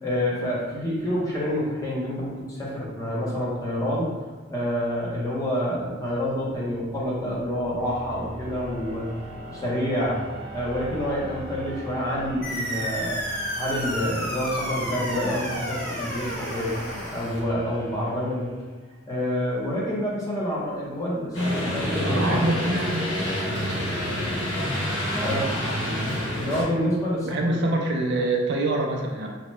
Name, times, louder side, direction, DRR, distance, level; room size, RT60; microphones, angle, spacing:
voice 1, 0.0-4.1 4.5-9.1 9.5-10.2 10.5-13.2 13.5-16.7 17.1-18.6 19.1-22.5 25.2-25.5 26.3-27.6, equal, 15° left, -6 dB, 0.7 m, -28 dB
sound 1, 6.0-18.9, equal, 85° right, 0.8 m, -41 dB
sound 2, 12.4-17.4, equal, 55° left, 1.1 m, -31 dB
sound 3, 21.3-26.6, equal, 80° left, 1.2 m, -27 dB
voice 2, 22.0-23.1 27.2-29.3, right 2 dB, 60° right, 0 dB, 0.4 m, -25 dB
2.8 x 2.1 x 3.0 m, 1.3 s
head